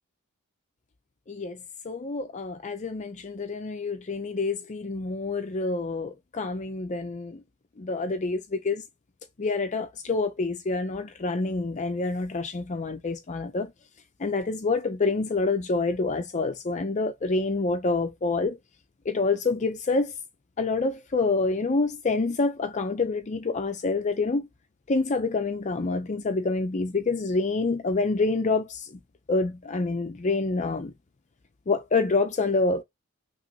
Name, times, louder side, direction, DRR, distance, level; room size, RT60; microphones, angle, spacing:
voice 1, 1.3-1.6 1.8-7.4 7.8-8.8 9.4-13.7 14.2-18.6 19.1-20.1 20.6-24.5 24.9-29.0 29.3-30.9 31.7-32.8, left 3 dB, 35° left, 0.5 m, -27 dB
5.9 x 3.0 x 2.7 m
head